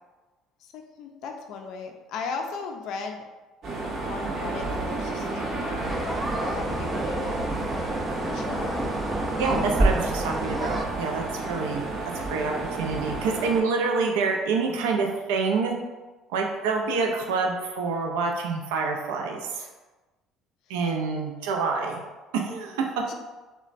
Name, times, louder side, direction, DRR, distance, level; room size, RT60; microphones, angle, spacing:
voice 1, 0.7-3.3 3.9-7.5 8.2-8.9 11.5-11.9 23.1-23.2, left 5 dB, 70° left, 3 dB, 0.3 m, -37 dB
sound 1, 3.6-13.6, right 2 dB, 50° right, 0.7 m, -31 dB
sound 2, 5.8-10.8, right 1 dB, 15° right, 0.3 m, -29 dB
voice 2, 9.4-11.8 12.1-15.7 16.3-19.7 20.7-22.0 22.3-22.8, right 4 dB, 90° right, 1 dB, 0.4 m, -27 dB
3.0 x 2.1 x 2.4 m, 1.2 s
supercardioid pair, 85°, 0 cm